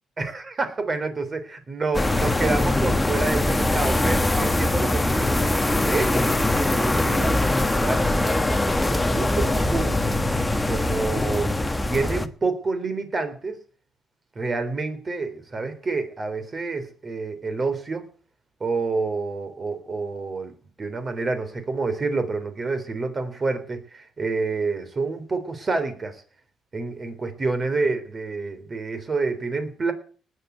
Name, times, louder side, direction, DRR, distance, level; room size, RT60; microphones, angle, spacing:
voice 1, 0.2-10.1 10.7-11.5 11.9-13.6 14.4-18.0 18.6-20.5 20.8-26.2 26.7-29.9, right 3 dB, 30° right, 9 dB, 3.6 m, -28 dB
sound 1, 1.9-12.3, left 1 dB, 10° left, 1.3 m, -22 dB
19.0 x 7.7 x 8.2 m, 0.42 s
cardioid pair, 115°, 0 cm